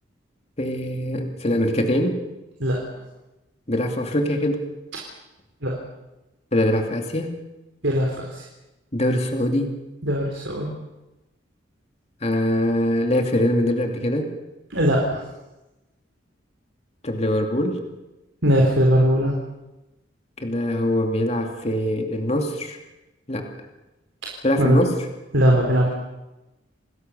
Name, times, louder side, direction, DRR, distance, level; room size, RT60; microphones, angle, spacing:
voice 1, 0.6-2.2 3.7-4.7 6.5-7.4 8.9-9.8 12.2-14.3 17.0-17.8 20.4-22.8 23.3-23.5 24.4-25.0, left 1 dB, 35° left, 4 dB, 2.6 m, -23 dB
voice 2, 7.8-8.4 10.0-10.7 14.7-15.2 18.4-19.3 24.2-24.8 25.3-25.9, equal, 75° right, -1 dB, 4.1 m, -20 dB
28.5 x 19.5 x 7.0 m, 1.0 s
head